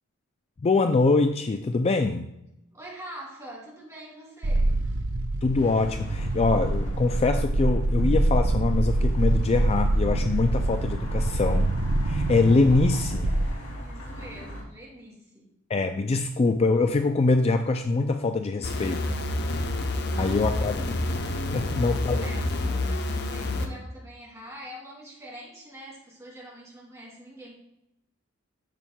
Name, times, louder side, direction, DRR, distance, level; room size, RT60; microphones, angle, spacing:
voice 1, 0.6-2.3 5.4-11.7 12.0-13.3 15.7-19.2 20.2-21.0 21.5-22.3, left 3 dB, 30° left, 7 dB, 0.4 m, -24 dB
voice 2, 2.7-4.8 13.8-15.5 19.6-20.5 21.5-27.5, right 1 dB, 15° right, -4 dB, 2.8 m, -45 dB
sound 1, 4.4-13.8, right 1 dB, 60° right, 0.6 m, -25 dB
sound 2, 5.5-14.6, equal, 80° left, 2.7 m, -39 dB
sound 3, 18.6-23.7, left 2 dB, 55° left, 0.8 m, -28 dB
10.5 x 7.3 x 2.3 m, 0.85 s
head